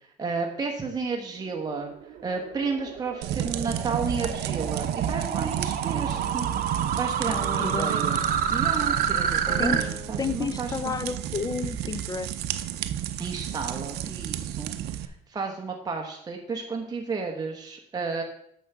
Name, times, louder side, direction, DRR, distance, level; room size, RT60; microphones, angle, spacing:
voice 1, 0.2-1.9 2.2-10.9 13.2-18.2, right 4 dB, 25° right, 1 dB, 1.0 m, -32 dB
sound 1, 1.8-9.8, right 8 dB, 55° right, 0.9 m, -29 dB
sound 2, 3.2-15.1, right 11 dB, 75° right, 0.6 m, -32 dB
sound 3, 6.1-12.8, right 2 dB, 5° right, 2.0 m, -43 dB
voice 2, 7.6-7.9 9.6-9.8 10.2-12.3, left 5 dB, 20° left, 13 dB, 0.6 m, -30 dB
6.7 x 6.3 x 5.9 m, 0.72 s
cardioid pair, 110°, 17 cm